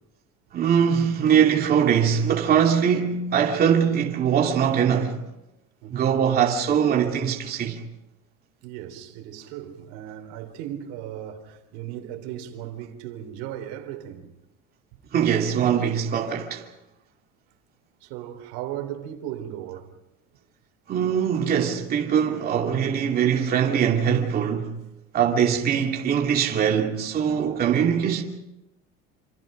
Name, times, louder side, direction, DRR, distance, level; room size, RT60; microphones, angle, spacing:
voice 1, 0.5-5.2 5.9-7.8 15.1-16.7 20.9-24.7 25.1-28.2, right 8 dB, 30° right, 2.7 m, -22 dB
voice 2, 8.6-14.3 18.0-19.9 25.2-25.4, right 11 dB, 85° right, 3.7 m, -37 dB
28.0 x 27.0 x 5.1 m
cardioid pair, 170°, 30 cm